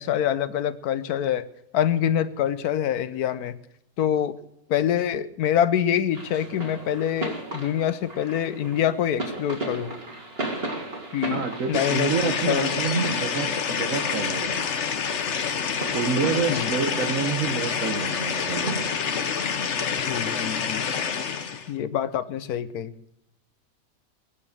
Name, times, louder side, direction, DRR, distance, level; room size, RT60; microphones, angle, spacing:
voice 1, 0.0-1.4 1.7-3.6 4.0-4.4 4.7-9.9 11.1-12.8 16.5-16.7 20.0-20.8 21.7-22.9, left 10 dB, 85° left, 15 dB, 1.3 m, -25 dB
sound 1, 6.1-21.1, right 2 dB, 40° right, 2.5 m, -37 dB
voice 2, 11.3-14.7 15.9-18.9, right 6 dB, 60° right, 5 dB, 1.4 m, -28 dB
sound 2, 11.7-21.7, left 6 dB, 55° left, 1.1 m, -27 dB
21.5 x 8.6 x 6.6 m, 0.79 s
omnidirectional pair, 1.6 m